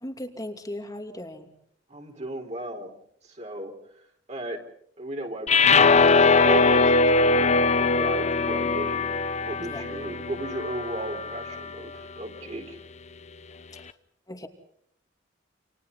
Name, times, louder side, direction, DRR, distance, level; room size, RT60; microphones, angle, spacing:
voice 1, 0.0-1.5 9.6-9.9 13.7-13.9 14.3-14.5, left 1 dB, 20° left, 5 dB, 2.8 m, -37 dB
voice 2, 1.9-2.9 3.2-4.0 4.3-4.6 5.0-7.5 7.9-9.1 9.4-12.8, right 1 dB, 40° right, 2 dB, 4.6 m, -35 dB
sound 1, 5.5-11.7, left 4 dB, 40° left, 0.9 m, -21 dB
29.5 x 28.0 x 4.2 m, 0.69 s
head